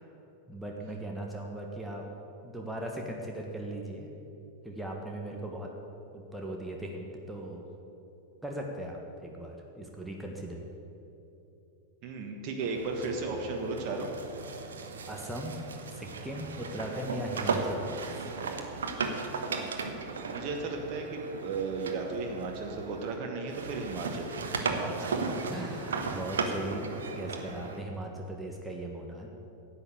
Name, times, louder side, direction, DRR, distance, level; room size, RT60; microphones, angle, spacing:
voice 1, 0.5-2.1 2.4-4.1 4.6-5.7 6.1-7.6 8.4-10.6 15.1-15.6 15.9-18.4 24.7-29.3, right 1 dB, 5° right, 0 dB, 1.5 m, -38 dB
voice 2, 12.0-14.1 20.2-24.3 24.6-25.3, right 3 dB, 40° right, 2 dB, 1.4 m, -35 dB
sound 1, 12.6-23.2 23.5-27.8, right 4 dB, 65° right, 1.1 m, -36 dB
11.0 x 8.6 x 8.1 m, 2.9 s
figure-of-eight pair, 90°, 0 cm